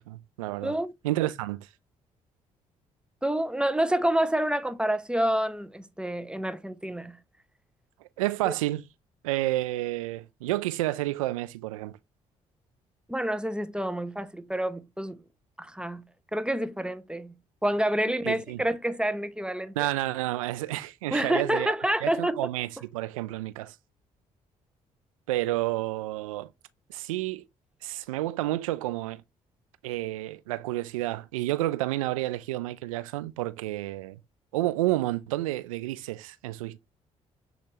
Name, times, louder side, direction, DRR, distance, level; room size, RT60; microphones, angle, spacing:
voice 1, 0.0-0.8 1.0-1.7 8.0-8.9 9.2-12.0 18.2-18.6 19.8-21.7 22.0-23.8 25.3-26.5 26.9-27.5 27.8-29.2 29.8-34.2 34.5-36.8, right 17 dB, 75° right, 0.4 m, -30 dB
voice 2, 3.2-7.2 8.5-8.6 13.1-15.2 15.6-16.0 16.3-17.3 17.6-19.9 21.1-22.4, right 1 dB, 5° right, 0.5 m, -28 dB
6.5 x 2.4 x 3.0 m
figure-of-eight pair, 40°, 18 cm